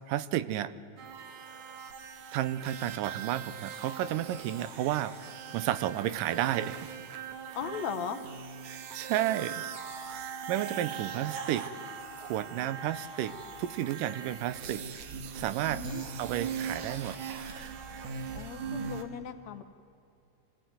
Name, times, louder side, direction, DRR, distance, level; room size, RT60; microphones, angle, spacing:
voice 1, 0.1-0.7 2.3-6.9 8.7-9.6 10.5-11.7 12.2-14.8 15.3-15.8 16.2-17.2 17.9-18.0, right 12 dB, 85° right, 14 dB, 2.4 m, -32 dB
sound 1, 1.0-19.0, right 6 dB, 70° right, 2.9 m, -40 dB
voice 2, 7.6-8.2 15.7-16.0 18.3-19.6, left 8 dB, 65° left, 8 dB, 2.0 m, -37 dB
25.0 x 17.0 x 9.5 m, 2.7 s
omnidirectional pair, 3.8 m